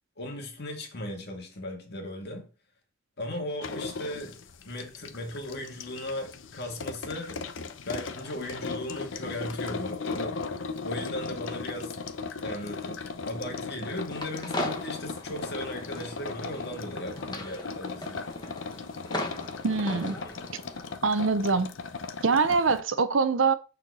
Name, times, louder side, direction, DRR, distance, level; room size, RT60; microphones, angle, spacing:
voice 1, 0.2-2.5 3.2-7.5 7.9-10.4 10.8-12.0 12.4-18.2, left 1 dB, 60° left, 1.8 m, -37 dB
sound 1, 3.6-22.8, left 4 dB, 75° left, 0.7 m, -37 dB
sound 2, 13.8-21.0, left 1 dB, 20° left, 1.3 m, -38 dB
voice 2, 19.6-20.2 21.0-21.7 22.2-23.5, right 4 dB, 85° right, 0.7 m, -24 dB
6.3 x 4.4 x 5.4 m
head